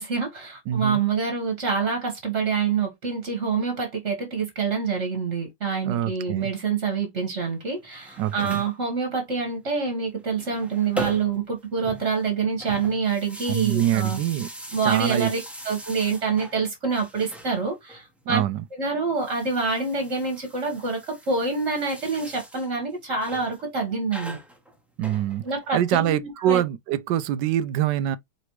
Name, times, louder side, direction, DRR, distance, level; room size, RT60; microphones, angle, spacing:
voice 1, 0.0-14.2 14.7-15.4 15.6-18.4 18.7-24.4 25.4-26.6, right 5 dB, 35° right, 1.6 m, -26 dB
voice 2, 0.7-1.0 5.8-6.5 8.2-8.6 13.5-14.5 14.8-15.3 18.3-18.6 25.0-25.4 25.7-28.2, right 12 dB, 75° right, 1.1 m, -24 dB
sound 1, 7.8-8.7 10.2-11.5 11.8-16.6 16.9-18.0 19.1-22.7 23.2-23.6 24.1-25.7, right 1 dB, ahead, 0.9 m, -40 dB
5.1 x 3.3 x 3.1 m
omnidirectional pair, 2.3 m